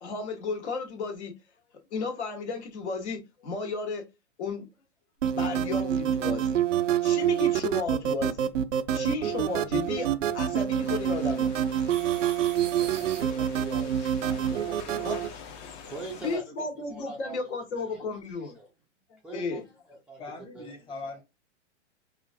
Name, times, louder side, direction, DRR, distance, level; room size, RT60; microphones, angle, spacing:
voice 1, 0.0-1.3 1.9-4.1 4.4-4.7 5.3-6.6 7.0-11.5 15.0-15.2 16.2-18.6 19.3-19.6, left 4 dB, 65° left, 1.6 m, -34 dB
sound 1, 5.2-15.3, right 9 dB, 85° right, 0.6 m, -27 dB
sound 2, 10.8-16.4, left 6 dB, 35° left, 0.9 m, -46 dB
voice 2, 12.6-15.4 15.9-17.4 17.7-18.7 19.2-19.6 19.9-20.2 20.5-20.7 21.0-21.1, right 3 dB, 5° right, 0.5 m, -43 dB
voice 3, 20.2-21.2, left 3 dB, 15° left, 1.1 m, -40 dB
4.9 x 2.4 x 2.7 m
hypercardioid pair, 125°, 37 cm